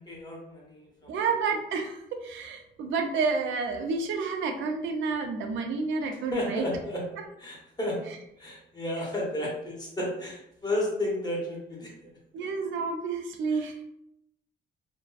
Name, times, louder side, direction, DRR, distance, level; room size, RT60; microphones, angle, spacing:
voice 1, 0.0-1.3 6.3-7.0 7.4-12.1 12.4-12.5 13.5-13.6, left 1 dB, 20° left, -3 dB, 0.9 m, -33 dB
voice 2, 1.1-6.6 12.3-13.8, right 4 dB, 75° right, 3 dB, 0.4 m, -30 dB
2.5 x 2.1 x 2.3 m, 0.80 s
cardioid pair, 90°, 20 cm